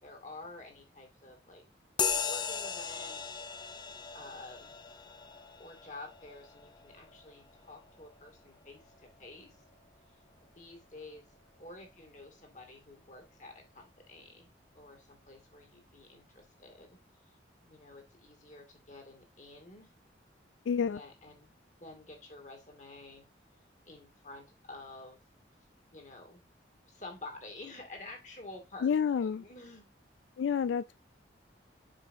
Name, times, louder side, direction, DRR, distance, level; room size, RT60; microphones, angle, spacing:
voice 1, 0.0-1.6 2.1-3.5 3.8-4.8 5.6-9.6 10.1-11.3 11.6-14.5 14.7-16.9 17.2-19.9 20.8-23.2 23.9-25.2 25.9-26.4 26.9-29.9, left 2 dB, 40° left, 2.4 m, -50 dB
sound 1, 2.0-9.9, left 6 dB, 25° left, 0.6 m, -38 dB
voice 2, 20.7-21.0 28.8-29.4 30.4-31.0, left 7 dB, 85° left, 0.3 m, -29 dB
7.5 x 6.1 x 2.7 m
head